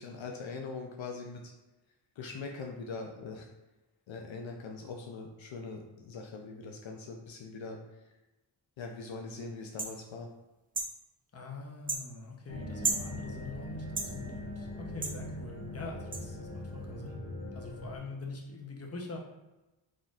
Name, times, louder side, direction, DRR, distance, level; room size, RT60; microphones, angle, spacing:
voice 1, 0.0-1.5 2.2-3.5 4.1-7.8 8.8-10.3, left 4 dB, 70° left, 2 dB, 0.6 m, -42 dB
sound 1, 9.8-9.9 10.7-10.9 11.9-12.0 12.8-13.1 14.0-14.1 15.0-15.2 16.1-16.2, right 3 dB, 20° right, 0.3 m, -32 dB
voice 2, 11.3-17.2 17.5-19.2, left 3 dB, 30° left, 0 dB, 0.8 m, -44 dB
sound 2, 12.5-18.0, left 1 dB, 65° right, 1.4 m, -41 dB
4.1 x 3.7 x 2.4 m, 1.0 s
wide cardioid pair, 85°, 48 cm